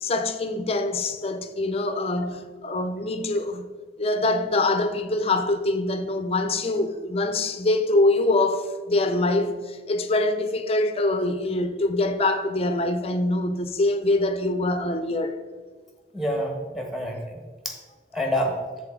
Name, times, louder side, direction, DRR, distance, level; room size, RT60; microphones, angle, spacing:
voice 1, 0.0-3.7 4.0-15.4, left 2 dB, 35° left, 0.5 m, -24 dB
voice 2, 16.1-17.8 18.1-18.6, equal, ahead, 1.2 m, -28 dB
13.0 x 4.3 x 3.7 m
head